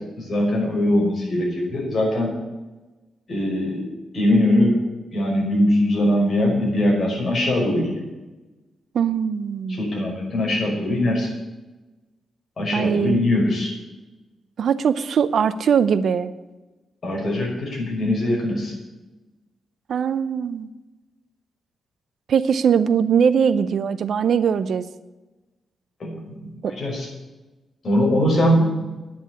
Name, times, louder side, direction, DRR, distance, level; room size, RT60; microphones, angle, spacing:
voice 1, 0.2-2.3 3.3-3.9 4.1-4.8 5.1-7.9 9.7-11.3 12.6-13.7 17.0-18.7 26.0-27.1 27.8-28.9, left 1 dB, 40° left, -1 dB, 5.6 m, -21 dB
voice 2, 8.9-9.8 12.7-13.2 14.6-16.3 19.9-20.7 22.3-24.9 26.6-26.7, right 7 dB, 60° right, 13 dB, 0.6 m, -21 dB
10.5 x 9.9 x 8.4 m, 1.1 s
wide cardioid pair, 140°, 0 cm